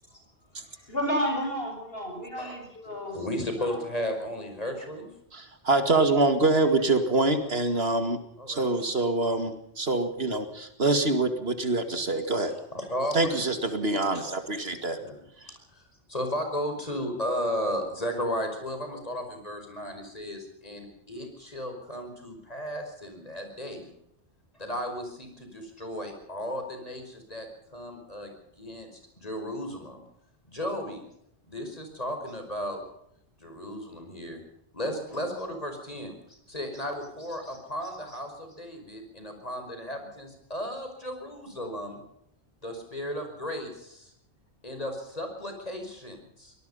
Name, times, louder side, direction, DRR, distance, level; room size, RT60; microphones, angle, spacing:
voice 1, 0.5-3.2 3.6-3.8, equal, 60° left, 2 dB, 7.3 m, -32 dB
voice 2, 3.1-5.1 8.4-8.7 12.7-13.5 15.0-15.2 15.7-15.8 16.1-23.9 24.6-28.9 29.2-30.0 30.5-31.0 31.5-32.8 33.4-34.4 34.7-42.0 42.6-44.1 44.6-46.5, equal, 35° left, 5 dB, 5.4 m, -34 dB
voice 3, 5.3-8.2 8.5-12.5 13.1-15.0 15.4-15.5, right 2 dB, 65° right, 8 dB, 2.4 m, -25 dB
24.5 x 19.0 x 5.6 m, 0.73 s
omnidirectional pair, 1.1 m